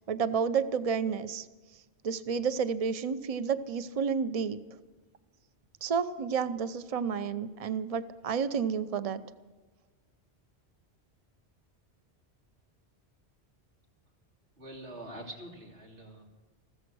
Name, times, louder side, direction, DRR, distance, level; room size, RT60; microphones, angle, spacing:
voice 1, 0.1-1.5 2.0-4.6 5.8-9.2, right 6 dB, 40° right, 13 dB, 0.7 m, -30 dB
voice 2, 14.6-16.2, right 1 dB, 90° right, 0 dB, 3.4 m, -45 dB
14.5 x 14.5 x 6.2 m, 1.3 s
omnidirectional pair, 1.1 m